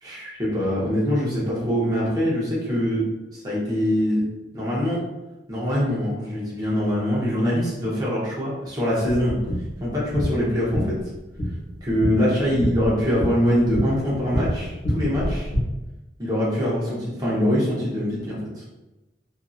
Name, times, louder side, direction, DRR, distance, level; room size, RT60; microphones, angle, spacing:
voice 1, 0.0-3.0 3.3-4.2 4.5-5.0 5.5-9.4 9.8-10.9 11.8-15.5 16.2-18.7, equal, 20° right, -7 dB, 0.8 m, -23 dB
sound 1, 9.1-15.6, equal, 45° left, 1.1 m, -28 dB
2.6 x 2.5 x 2.4 m, 1.0 s
head